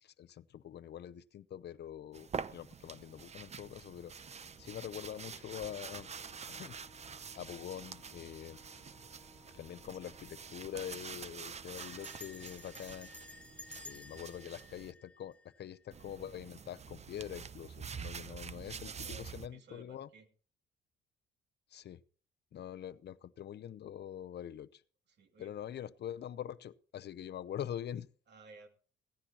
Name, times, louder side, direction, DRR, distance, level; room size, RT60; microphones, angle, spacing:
voice 1, 0.0-6.1 6.5-7.1 7.3-8.6 9.6-13.1 13.8-20.1 21.7-22.0 22.5-24.8 25.4-28.1, left 10 dB, 60° left, 13 dB, 0.7 m, -45 dB
sound 1, 2.1-14.9 15.9-19.5, right 6 dB, 35° right, 0.7 m, -47 dB
sound 2, 4.2-15.4, left 2 dB, 10° right, 4.2 m, -63 dB
Bell, 11.8-15.9, left 2 dB, 5° left, 0.8 m, -53 dB
voice 2, 13.8-14.3 18.2-18.5 18.8-20.3 25.1-25.9 28.3-28.7, right 3 dB, 60° right, 6 dB, 2.6 m, -58 dB
17.0 x 14.5 x 2.9 m, 0.43 s
cardioid pair, 90°, 20 cm